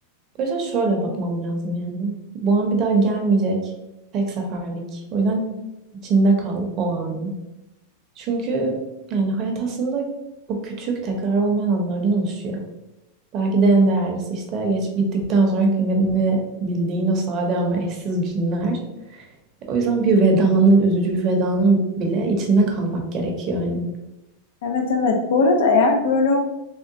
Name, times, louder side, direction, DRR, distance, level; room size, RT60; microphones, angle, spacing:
voice 1, 0.4-3.6 4.1-5.4 6.0-7.3 8.2-8.8 9.1-10.1 10.5-12.6 13.3-18.8 19.1-19.2 19.7-23.8, right 3 dB, 35° right, 2 dB, 0.6 m, -21 dB
voice 2, 24.6-26.4, left 3 dB, 80° left, 4 dB, 0.5 m, -19 dB
3.6 x 2.1 x 2.6 m, 0.97 s
supercardioid pair, 145°, 0 cm